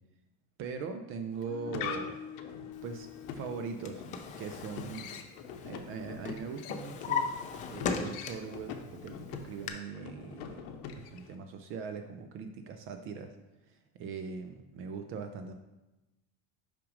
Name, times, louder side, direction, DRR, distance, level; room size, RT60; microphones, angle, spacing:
voice 1, 0.6-2.2 2.8-3.1 3.4-4.1 4.4-5.1 5.6-7.3 7.7-10.6 11.0-13.4 13.6-15.5, right 5 dB, 40° right, 7 dB, 0.4 m, -41 dB
sound 1, 1.3-11.4, left 6 dB, 70° left, 0.8 m, -43 dB
Drawer open or close, 3.5-5.9 6.2-8.6 9.0-9.7, left 6 dB, 25° left, 0.4 m, -37 dB
5.8 x 5.1 x 5.0 m, 1.0 s
cardioid pair, 175°, 34 cm